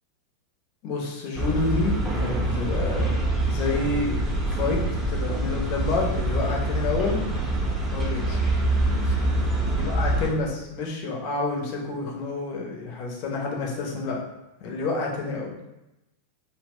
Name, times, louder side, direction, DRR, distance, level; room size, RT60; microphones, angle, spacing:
voice 1, 0.8-3.1 3.5-4.2 4.5-4.8 5.1-7.3 7.9-8.4 9.0-9.1 9.7-14.2 14.6-15.6, left 3 dB, 45° left, -1 dB, 0.6 m, -29 dB
sound 1, 1.4-10.3, right 1 dB, 5° right, 0.6 m, -25 dB
2.3 x 2.1 x 3.5 m, 0.92 s
figure-of-eight pair, 90°, 0 cm